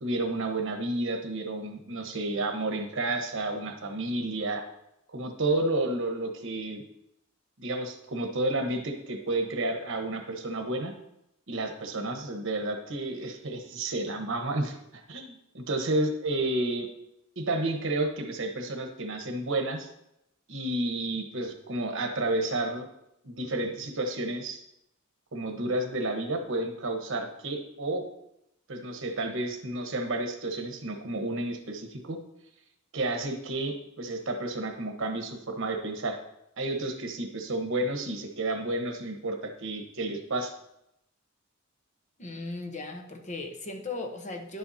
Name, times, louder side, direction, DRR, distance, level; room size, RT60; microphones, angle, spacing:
voice 1, 0.0-4.6 5.1-6.8 7.6-10.9 11.5-16.9 17.4-19.9 20.5-22.8 23.2-24.6 25.3-28.1 28.7-32.2 32.9-36.2 36.6-40.5, right 2 dB, 65° right, 4 dB, 1.2 m, -31 dB
voice 2, 42.2-44.6, left 3 dB, 35° left, 4 dB, 0.9 m, -37 dB
10.5 x 7.8 x 2.8 m, 0.82 s
head